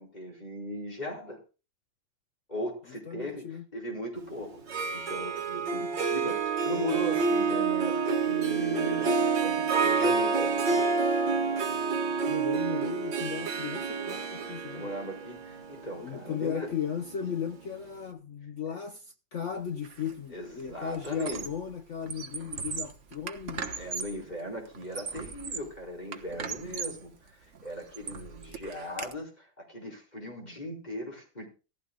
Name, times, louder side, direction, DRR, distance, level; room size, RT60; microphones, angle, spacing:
voice 1, 0.0-1.4 2.5-10.8 14.7-16.7 20.3-21.5 23.8-31.4, equal, 20° left, 5.0 m, -38 dB
voice 2, 3.1-3.6 12.3-14.9 16.0-23.7, left 8 dB, 60° left, 0.8 m, -36 dB
Harp, 4.6-17.5, right 5 dB, 75° right, 2.4 m, -28 dB
Squeak, 19.8-20.1 20.4-21.7 22.0-24.2 24.7-25.8 26.1-27.1 27.5-29.1, right 5 dB, 45° right, 1.4 m, -39 dB
16.5 x 15.0 x 2.3 m
omnidirectional pair, 2.0 m